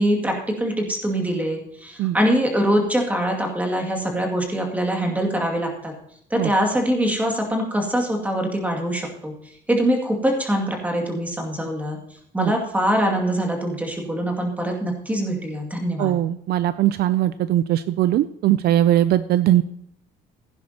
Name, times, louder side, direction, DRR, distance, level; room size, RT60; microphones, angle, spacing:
voice 1, 0.0-5.9 6.3-9.3 9.7-12.0 12.3-16.2, equal, 10° right, 1 dB, 2.2 m, -23 dB
voice 2, 16.0-19.6, right 13 dB, 60° right, 14 dB, 0.4 m, -20 dB
15.5 x 10.5 x 2.9 m, 0.72 s
cardioid pair, 125°, 18 cm